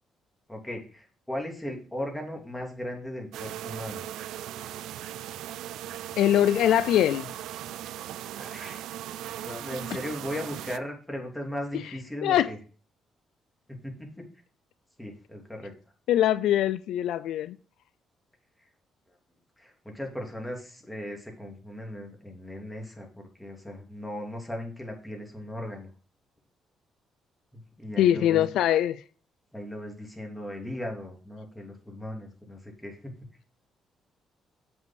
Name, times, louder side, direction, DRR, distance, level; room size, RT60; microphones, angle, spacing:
voice 1, 0.5-4.1 8.3-8.8 9.4-12.6 13.7-14.1 15.0-15.7 18.6-18.7 19.1-19.2 19.6-23.1 23.4-25.9 27.5-28.5 29.5-33.2, left 1 dB, 5° left, 3.0 m, -37 dB
sound 1, 3.3-10.8, right 12 dB, 85° right, 0.4 m, -38 dB
voice 2, 6.2-7.3 12.2-12.5 16.1-17.6 28.0-29.0, left 11 dB, 85° left, 0.4 m, -22 dB
7.8 x 5.5 x 6.1 m
cardioid pair, 90°, 0 cm